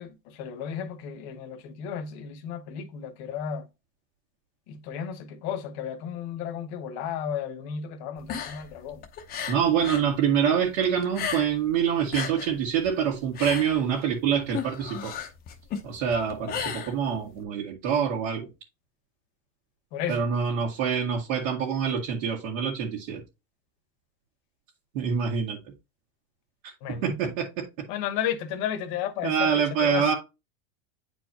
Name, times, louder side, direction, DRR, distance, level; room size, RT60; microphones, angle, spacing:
voice 1, 0.0-3.7 4.7-9.0 19.9-20.3 26.8-27.2 27.9-30.1, left 8 dB, 40° left, 1.1 m, -33 dB
sound 1, 8.2-10.1 10.4-11.7 12.0-17.4, left 7 dB, 20° left, 0.8 m, -35 dB
voice 2, 9.5-15.1 15.8-18.5 20.1-23.2 24.9-25.6 26.9-27.7 29.2-30.1, right 7 dB, 65° right, 1.8 m, -26 dB
9.0 x 4.5 x 2.8 m
supercardioid pair, 165°, 41 cm